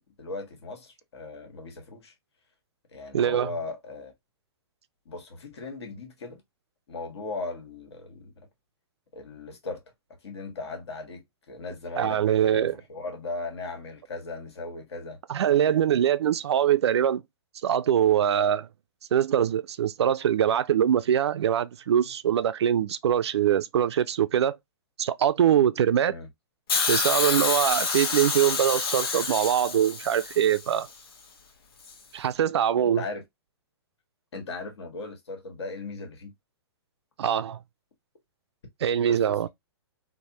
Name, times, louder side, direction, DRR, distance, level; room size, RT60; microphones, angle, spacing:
voice 1, 0.0-2.1 2.9-4.1 5.0-6.4 6.9-8.3 9.1-9.8 10.2-15.2 26.1-26.3 32.7-33.2 34.3-36.3 39.1-39.4, left 3 dB, 80° left, 1.4 m, -38 dB
voice 2, 3.1-3.5 12.0-12.8 15.3-17.2 17.6-18.7 19.1-24.6 25.0-26.1 26.9-30.9 32.1-33.0 37.2-37.6 38.8-39.5, right 10 dB, 85° right, 0.4 m, -23 dB
Hiss, 26.7-30.8 31.9-32.0, left 4 dB, 60° left, 1.0 m, -28 dB
3.3 x 2.1 x 2.8 m
hypercardioid pair, 155°, 14 cm